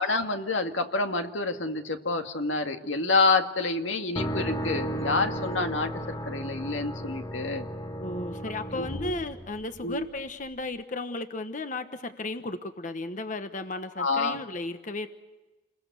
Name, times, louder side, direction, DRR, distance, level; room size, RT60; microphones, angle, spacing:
voice 1, 0.0-5.9 6.3-7.7 8.8-9.2 9.8-10.1 14.0-14.4, left 3 dB, 85° left, 6 dB, 2.0 m, -28 dB
sound 1, 4.2-10.0, equal, 20° left, 1.3 m, -34 dB
voice 2, 8.0-15.1, left 2 dB, 45° left, 8 dB, 1.2 m, -34 dB
29.5 x 21.0 x 8.1 m, 1.1 s
head